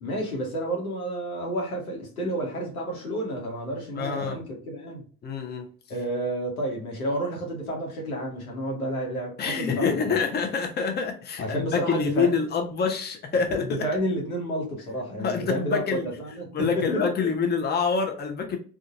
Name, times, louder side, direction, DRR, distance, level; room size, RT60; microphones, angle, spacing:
voice 1, 0.0-5.0 5.9-10.2 11.4-12.3 13.5-17.0, right 1 dB, 80° left, 1.1 m, -30 dB
voice 2, 4.0-4.4 5.2-5.7 9.4-13.8 15.2-16.1 16.5-18.6, left 5 dB, 25° left, 0.7 m, -26 dB
3.8 x 2.5 x 2.4 m
figure-of-eight pair, 60°, 43 cm